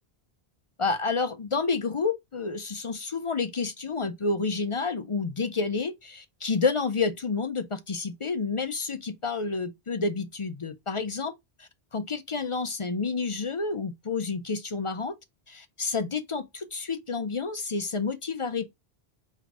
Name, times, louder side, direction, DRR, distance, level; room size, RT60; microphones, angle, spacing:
voice 1, 0.8-11.3 11.6-15.1 15.5-18.6, left 4 dB, 40° left, 0.5 m, -29 dB
3.4 x 3.2 x 4.8 m
omnidirectional pair, 1.1 m